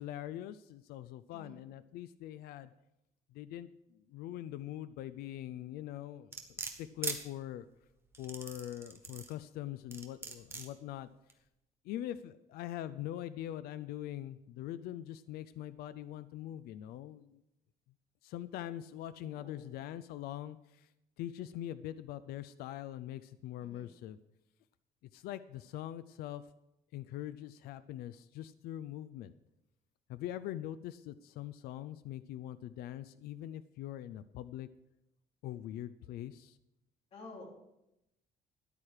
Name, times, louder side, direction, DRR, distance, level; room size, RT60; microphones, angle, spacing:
voice 1, 0.0-2.7 3.3-7.7 8.2-11.1 11.8-17.4 18.2-20.9 21.2-24.2 25.1-26.4 26.9-29.3 30.1-34.7 35.4-36.6, left 12 dB, 85° left, 13 dB, 0.5 m, -43 dB
sound 1, 6.3-7.2 8.1-9.3 9.9-10.7 11.3-11.4, right 3 dB, 15° right, 1.2 m, -40 dB
voice 2, 19.2-19.7 23.6-23.9 37.1-37.5, left 2 dB, 40° left, 0 dB, 3.0 m, -51 dB
13.5 x 10.5 x 4.9 m, 0.87 s
cardioid pair, 170°, 16 cm